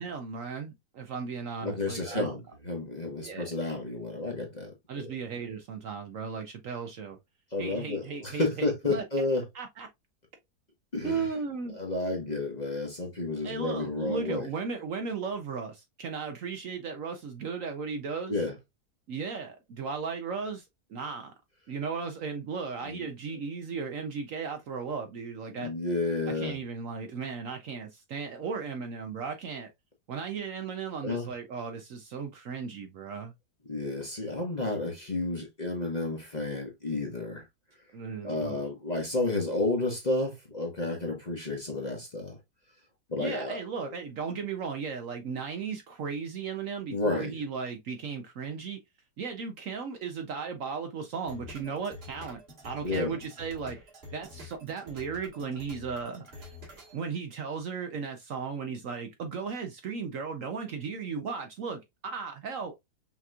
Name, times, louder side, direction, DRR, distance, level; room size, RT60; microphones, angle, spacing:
voice 1, 0.0-2.3 3.2-3.5 4.9-7.2 7.6-9.0 9.5-9.9 11.0-11.8 13.4-18.4 19.1-21.3 21.7-25.7 26.3-29.7 30.1-33.3 37.9-38.6 43.2-48.8 49.2-53.8 54.1-56.6 56.9-62.8, right 5 dB, 65° right, 0.9 m, -36 dB
voice 2, 1.6-5.1 7.5-9.4 10.9-11.3 11.7-14.5 18.3-18.5 22.8-23.4 25.5-26.6 31.0-31.3 33.7-37.5 38.2-42.4 43.1-43.9 46.9-47.3 52.8-53.1, left 2 dB, 30° left, 1.0 m, -31 dB
sound 1, 51.3-56.9, left 2 dB, 40° right, 1.6 m, -47 dB
5.8 x 2.9 x 2.3 m
omnidirectional pair, 1.8 m